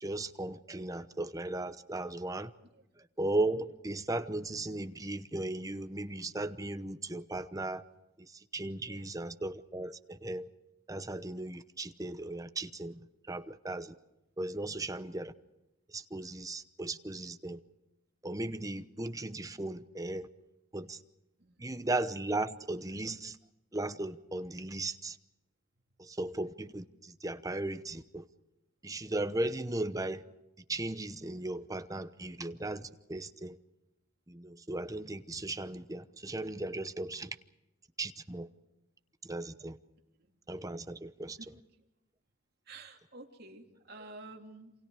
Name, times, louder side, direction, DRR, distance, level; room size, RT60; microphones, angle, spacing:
voice 1, 0.0-2.5 3.2-7.8 8.2-10.5 10.9-13.0 13.3-13.9 14.4-15.3 15.9-17.6 18.2-20.3 20.7-21.0 21.6-23.4 23.7-25.2 26.0-28.2 28.8-30.2 30.7-33.6 34.3-37.3 38.0-38.5 39.2-39.8 40.5-41.4, right 2 dB, 15° right, 0.9 m, -36 dB
voice 2, 8.8-9.1 11.8-11.9 21.4-21.8 40.2-40.3 41.4-41.6 42.7-44.7, right 2 dB, 50° right, 3.0 m, -51 dB
28.0 x 27.5 x 4.9 m
head